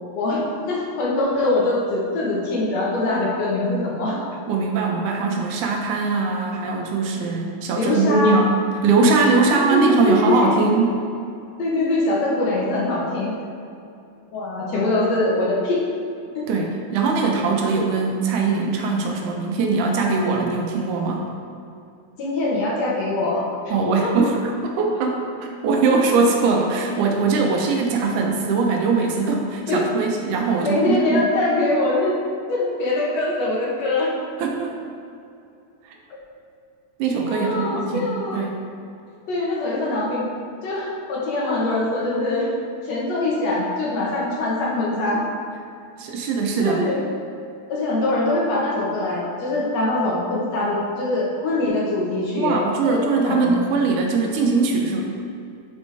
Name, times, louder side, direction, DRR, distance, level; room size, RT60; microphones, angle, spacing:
voice 1, 0.7-4.2 7.7-8.4 9.4-10.5 11.6-13.3 14.3-15.8 22.2-23.7 24.0-24.1 29.7-29.8 30.6-32.1 32.5-34.1 37.3-38.4 39.3-40.2 40.6-42.5 42.8-45.2 46.6-47.0 47.7-52.6 52.8-53.5, left 2 dB, 65° left, -5 dB, 2.2 m, -23 dB
voice 2, 4.5-11.0 16.5-21.3 23.7-24.5 24.8-25.2 25.6-31.2 34.4-34.7 35.9-36.0 37.0-38.6 46.0-46.8 52.4-55.0, right 4 dB, 85° right, 1 dB, 2.3 m, -21 dB
11.0 x 4.2 x 3.4 m, 2.6 s
omnidirectional pair, 3.5 m